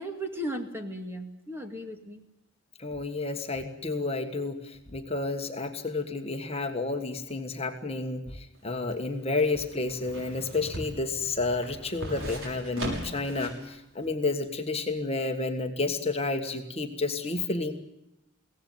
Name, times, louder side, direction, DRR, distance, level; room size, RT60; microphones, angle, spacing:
voice 1, 0.0-2.2, equal, 10° right, 4 dB, 2.3 m, -36 dB
voice 2, 2.8-17.7, left 3 dB, 30° left, 5 dB, 1.6 m, -31 dB
sound 1, 8.6-13.7 14.0-14.1, right 1 dB, 70° right, 6.8 m, -39 dB
23.0 x 17.5 x 9.4 m, 0.89 s
head